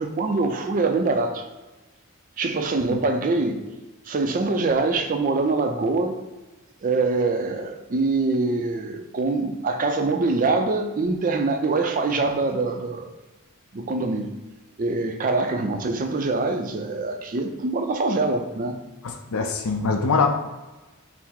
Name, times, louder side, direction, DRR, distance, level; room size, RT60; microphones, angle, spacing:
voice 1, 0.0-1.4 2.4-3.6 4.1-6.2 6.8-13.1 13.7-14.3 14.8-18.8 20.1-20.3, right 3 dB, 35° right, 0.4 m, -24 dB
voice 2, 19.0-20.3, left 4 dB, 75° left, 0.5 m, -23 dB
5.7 x 2.0 x 4.5 m
head